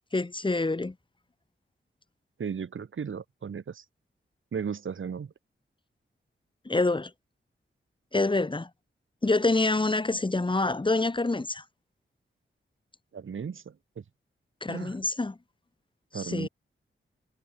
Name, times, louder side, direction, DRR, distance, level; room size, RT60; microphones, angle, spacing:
voice 1, 0.1-0.9 6.7-7.1 8.1-8.7 9.2-11.6 14.6-15.4 16.1-16.5, left 2 dB, 25° left, 3.5 m, -26 dB
voice 2, 2.4-3.8 4.5-5.3 13.1-13.6 14.7-15.0 16.1-16.5, right 6 dB, 75° right, 3.7 m, -35 dB
wide cardioid pair, 130°, 20 cm